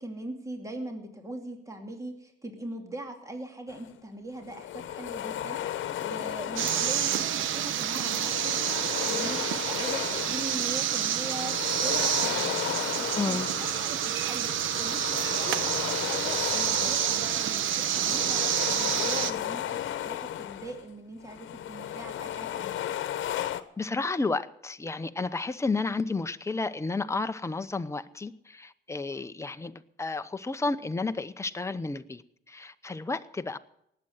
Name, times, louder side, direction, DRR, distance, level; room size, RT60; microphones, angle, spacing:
voice 1, 0.0-8.3 9.0-14.5 14.8-23.0, right 1 dB, 15° right, 4 dB, 2.6 m, -41 dB
sound 1, 3.7-3.9 4.4-7.4 7.8-10.8 11.1-14.1 14.5-20.9 21.2-23.6, left 11 dB, 75° left, 1.0 m, -35 dB
sound 2, 6.6-19.3, right 10 dB, 80° right, 1.1 m, -28 dB
voice 2, 13.1-13.5 23.8-32.2 32.5-33.6, left 3 dB, 15° left, 10 dB, 0.8 m, -32 dB
18.5 x 7.9 x 7.7 m, 0.77 s
cardioid pair, 90°, 20 cm